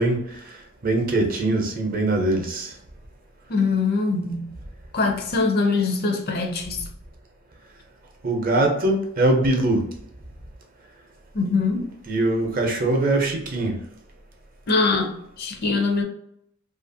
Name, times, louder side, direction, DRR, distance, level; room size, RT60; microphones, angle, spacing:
voice 1, 0.0-2.7 8.2-9.8 12.1-13.8, right 2 dB, 40° right, 0.6 m, -22 dB
voice 2, 3.5-4.5 4.9-6.8 11.3-11.9 14.7-16.0, left 4 dB, 45° left, 0.4 m, -23 dB
2.7 x 2.5 x 2.6 m
head